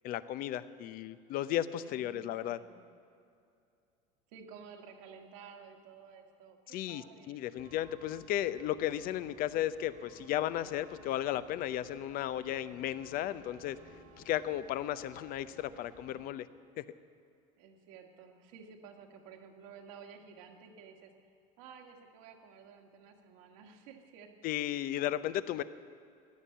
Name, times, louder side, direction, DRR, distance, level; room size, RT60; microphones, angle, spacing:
voice 1, 0.0-2.6 6.7-13.8 14.3-16.5 16.8-16.9 24.4-25.6, left 12 dB, 55° left, 15 dB, 0.7 m, -34 dB
voice 2, 1.9-2.8 4.3-7.5 17.6-21.1 21.6-24.3, right 6 dB, 75° right, 3 dB, 1.9 m, -53 dB
sound 1, 7.6-16.3, right 5 dB, 50° right, 1.8 m, -57 dB
15.0 x 9.9 x 8.6 m, 2.5 s
supercardioid pair, 95°, 18 cm